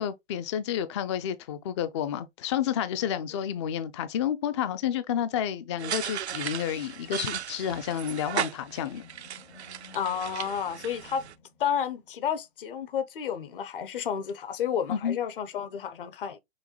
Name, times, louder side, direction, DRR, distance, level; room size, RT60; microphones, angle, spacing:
voice 1, 0.0-9.1 14.9-15.2, left 9 dB, 30° left, 0.4 m, -30 dB
sound 1, 5.8-11.3, right 10 dB, 85° right, 0.6 m, -36 dB
Animal, 8.2-12.3, left 4 dB, 80° left, 2.8 m, -54 dB
voice 2, 9.9-11.2 11.6-16.4, left 8 dB, 55° left, 0.9 m, -31 dB
6.2 x 2.3 x 2.9 m
hypercardioid pair, 135°, 32 cm